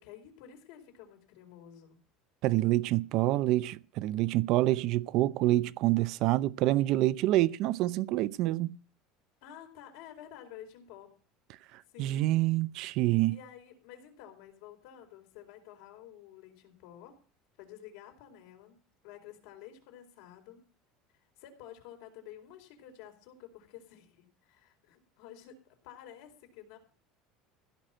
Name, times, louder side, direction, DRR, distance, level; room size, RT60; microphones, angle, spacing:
voice 1, 0.0-2.0 9.4-11.1 11.9-12.3 13.3-17.1 17.6-18.8 19.0-20.6 21.4-26.8, left 10 dB, 65° left, 4.5 m, -51 dB
voice 2, 2.4-8.8 12.0-13.4, right 16 dB, 50° right, 0.6 m, -27 dB
16.0 x 6.0 x 8.8 m
cardioid pair, 165°, 0 cm